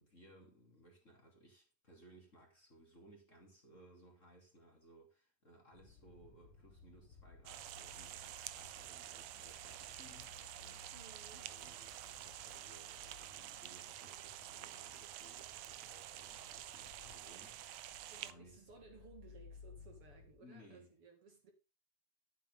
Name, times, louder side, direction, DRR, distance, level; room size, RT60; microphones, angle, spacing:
voice 1, 0.0-10.9 11.3-18.6 20.4-21.0, right 1 dB, 25° left, 2.9 m, -62 dB
sound 1, 5.7-20.3, left 5 dB, 45° left, 2.5 m, -61 dB
sound 2, 7.5-18.3, right 13 dB, 75° right, 1.7 m, -49 dB
voice 2, 10.9-11.5 18.1-21.5, right 4 dB, 50° right, 2.6 m, -59 dB
11.5 x 9.2 x 3.4 m
omnidirectional pair, 3.5 m